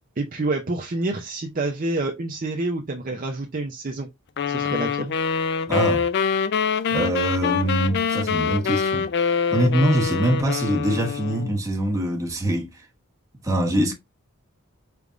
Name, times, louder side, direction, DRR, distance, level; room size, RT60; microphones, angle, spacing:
voice 1, 0.2-4.1 4.5-5.1, right 2 dB, 40° right, 0.6 m, -28 dB
sound 1, 4.4-11.5, left 6 dB, 50° left, 0.4 m, -24 dB
voice 2, 5.7-6.1 6.9-9.1 9.5-12.9 13.4-13.9, right 1 dB, 15° right, 1.1 m, -23 dB
5.0 x 3.4 x 2.4 m
head